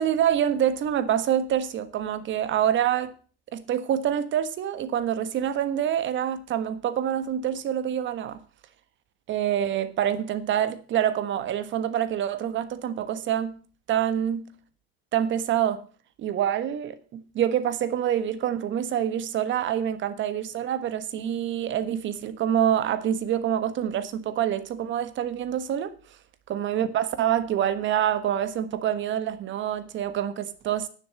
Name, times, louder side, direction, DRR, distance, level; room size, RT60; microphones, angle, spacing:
voice 1, 0.0-3.1 3.5-8.4 9.3-13.6 13.9-14.5 15.1-15.8 16.2-25.9 26.5-30.9, right 10 dB, 40° right, 1.4 m, -26 dB
10.0 x 7.3 x 7.4 m
supercardioid pair, 105°, 30 cm